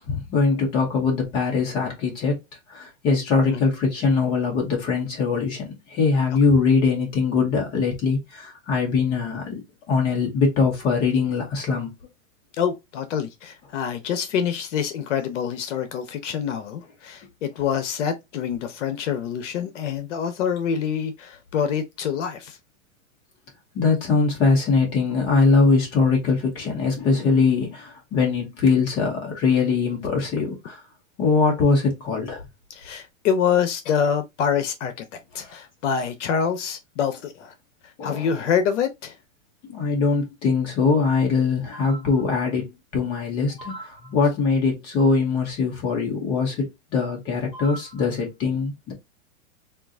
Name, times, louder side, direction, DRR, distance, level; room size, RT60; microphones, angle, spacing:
voice 1, 0.1-2.4 2.7-11.9 23.7-30.8 31.2-32.4 35.4-35.5 38.0-38.3 39.7-48.9, left 4 dB, 15° left, 0.3 m, -22 dB
voice 2, 12.6-22.6 32.7-37.5 38.0-39.2, left 7 dB, 60° left, 0.7 m, -26 dB
3.6 x 2.4 x 2.5 m
hypercardioid pair, 145°, 41 cm